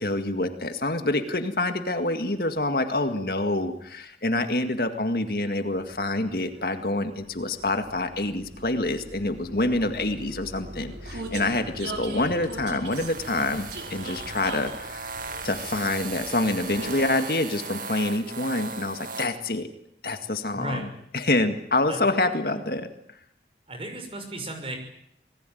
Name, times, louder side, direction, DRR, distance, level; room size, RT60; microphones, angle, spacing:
voice 1, 0.0-15.1 15.4-19.7 20.0-20.9 21.1-22.9, left 2 dB, 55° left, 7 dB, 2.0 m, -26 dB
Vehicle, 5.4-17.3, right 2 dB, 85° right, 5.2 m, -41 dB
sound 1, 12.9-19.3, right 4 dB, 50° right, 2.2 m, -37 dB
voice 2, 20.5-20.9 21.9-22.0 23.7-24.8, right 1 dB, 30° right, 5 dB, 6.2 m, -34 dB
27.5 x 19.5 x 9.3 m, 0.75 s
head